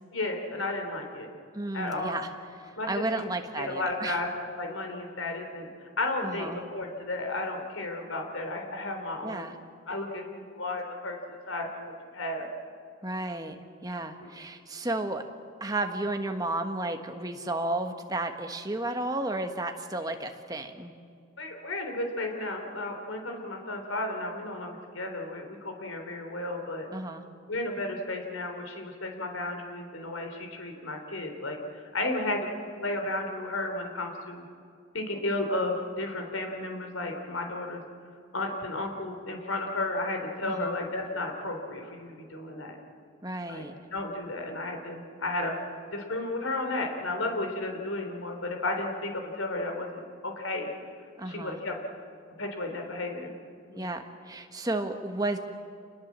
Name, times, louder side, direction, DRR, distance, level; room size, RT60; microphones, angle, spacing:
voice 1, 0.1-1.3 1.7-2.1 2.8-3.3 3.6-9.5 9.9-12.5 14.2-14.3 21.4-26.9 27.5-32.5 32.8-34.5 34.9-37.8 38.3-42.8 43.5-43.6 43.9-45.6 45.9-50.7 51.3-51.8 52.4-53.3 53.7-53.9, left 2 dB, 90° left, 3 dB, 3.7 m, -33 dB
voice 2, 1.5-2.3 2.6-4.2 6.2-6.6 9.2-9.5 13.0-13.6 13.8-15.2 15.6-20.9 26.9-27.2 40.4-40.8 43.2-43.7 51.2-51.6 53.8-55.4, right 2 dB, 20° right, 5 dB, 1.4 m, -33 dB
28.0 x 20.5 x 7.6 m, 2.4 s
head